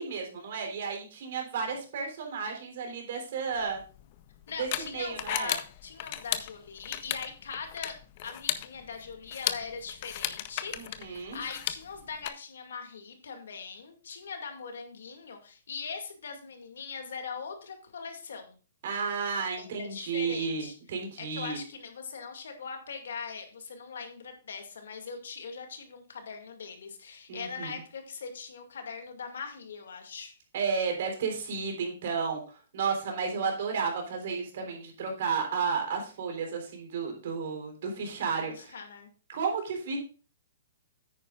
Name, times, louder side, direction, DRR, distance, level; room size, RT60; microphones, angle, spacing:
voice 1, 0.0-3.8 4.6-5.5 10.7-11.4 18.8-21.6 27.3-27.7 30.5-38.8 39.3-40.0, right 5 dB, 50° right, 2 dB, 3.7 m, -32 dB
sound 1, 3.6-12.3, left 13 dB, 35° left, 0.6 m, -36 dB
voice 2, 4.5-8.0 8.2-18.6 19.6-20.7 21.2-30.3 38.5-39.1, left 5 dB, 75° left, 5 dB, 2.2 m, -41 dB
9.9 x 9.1 x 2.4 m, 0.36 s
hypercardioid pair, 165°, 0 cm